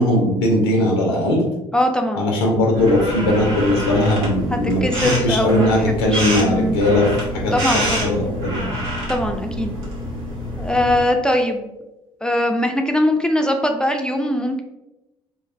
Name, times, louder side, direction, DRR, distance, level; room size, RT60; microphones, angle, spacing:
voice 1, 0.0-1.4 2.2-7.1 7.3-8.7, left 1 dB, 85° left, 0 dB, 0.4 m, -19 dB
voice 2, 1.7-2.3 4.5-6.8 7.5-8.2 9.1-9.7 10.6-11.7 12.2-14.6, left 1 dB, 5° left, 4 dB, 0.3 m, -21 dB
sound 1, 2.7-11.0, equal, 90° right, 0.7 m, -27 dB
2.4 x 2.1 x 2.4 m, 0.99 s
hypercardioid pair, 60°, 12 cm